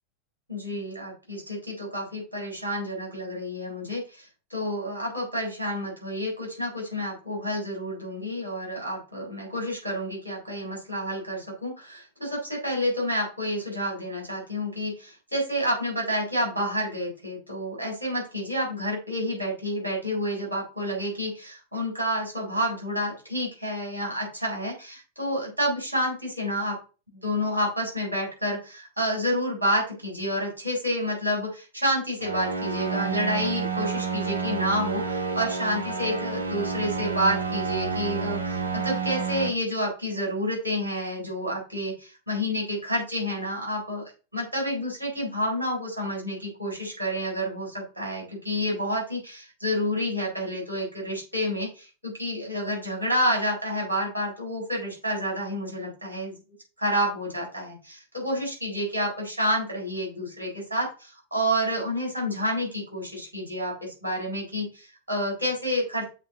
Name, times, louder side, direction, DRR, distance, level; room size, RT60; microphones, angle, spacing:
voice 1, 0.5-26.7 27.1-44.0 44.3-56.4 56.8-66.0, equal, 90° left, -2 dB, 4.0 m, -29 dB
sound 1, 32.2-39.5, right 5 dB, 75° right, 0.7 m, -29 dB
7.4 x 3.7 x 4.0 m, 0.34 s
figure-of-eight pair, 90°, 0 cm